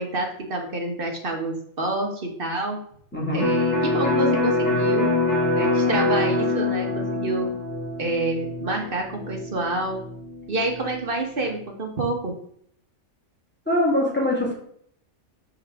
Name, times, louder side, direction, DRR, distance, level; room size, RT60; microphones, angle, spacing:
voice 1, 0.0-2.8 3.3-5.1 5.6-7.5 8.0-10.0 10.5-12.3, right 2 dB, 40° right, 2 dB, 1.5 m, -28 dB
voice 2, 3.1-3.5 13.7-14.5, left 1 dB, 5° left, -4 dB, 2.5 m, -22 dB
Electric guitar, 3.4-11.0, left 2 dB, 50° left, 3.2 m, -24 dB
7.2 x 5.5 x 3.6 m, 0.64 s
omnidirectional pair, 1.5 m